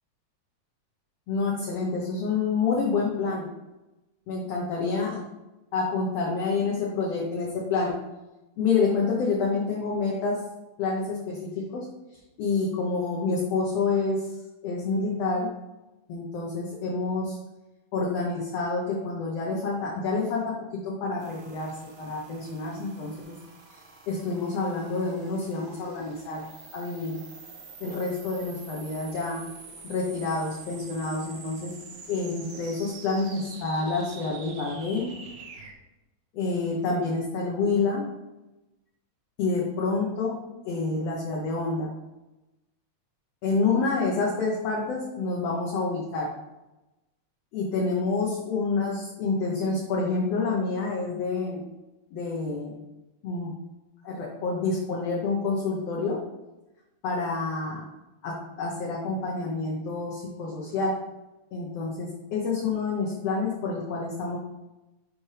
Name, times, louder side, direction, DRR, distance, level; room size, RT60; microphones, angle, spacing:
voice 1, 1.3-3.4 4.3-5.2 5.7-8.0 8.6-10.4 10.8-11.9 12.4-14.2 14.6-15.5 16.1-17.4 17.9-20.4 20.8-23.3 24.1-26.5 26.7-27.2 27.8-29.5 29.9-31.7 32.1-35.1 36.3-38.0 39.4-40.4 40.7-41.9 43.4-46.3 47.5-51.6 52.1-52.8 53.2-53.5 54.0-56.2 57.0-57.8 58.2-60.9 61.5-64.4, left 4 dB, 65° left, -3 dB, 1.9 m, -28 dB
sound 1, 21.2-35.7, right 4 dB, 65° right, 2.1 m, -46 dB
7.3 x 5.2 x 3.3 m, 1.0 s
omnidirectional pair, 3.4 m